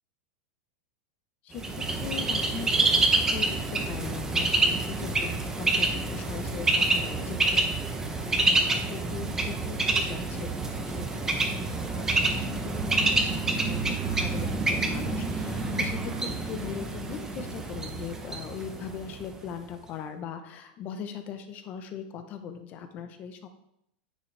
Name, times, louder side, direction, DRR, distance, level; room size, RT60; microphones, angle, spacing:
voice 1, 1.4-7.8 8.1-23.5, left 7 dB, 30° left, 8 dB, 0.8 m, -40 dB
Bird, 1.6-19.3, right 3 dB, 10° right, 0.6 m, -27 dB
9.3 x 6.0 x 3.3 m, 0.77 s
supercardioid pair, 160°, 5 cm